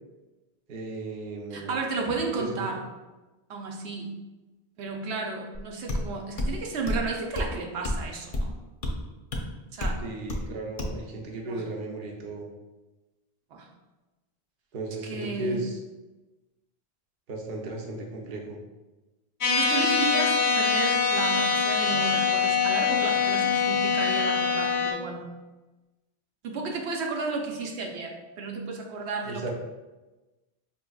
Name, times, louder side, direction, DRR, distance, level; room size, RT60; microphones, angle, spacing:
voice 1, 0.7-1.8 2.4-2.7 10.0-12.5 14.7-15.8 17.3-18.6 29.2-29.5, right 2 dB, 60° right, 0 dB, 0.8 m, -35 dB
voice 2, 1.5-2.8 3.5-4.1 4.8-8.5 9.7-10.0 11.5-11.6 13.5-13.7 15.0-15.6 19.5-25.3 26.4-29.5, right 3 dB, 90° right, 1 dB, 0.9 m, -33 dB
sound 1, 5.5-5.6 5.9-6.1 6.4-6.5 6.9-7.1 7.4-7.5 7.8-8.0 8.3-8.5 8.8-8.9 9.3-9.4 9.8-10.0 10.3-10.5 10.8-11.0, left 1 dB, 45° left, 0.5 m, -28 dB
sound 2, 19.4-24.9, left 5 dB, 85° left, 0.9 m, -24 dB
5.1 x 2.9 x 2.3 m, 1.1 s
omnidirectional pair, 1.1 m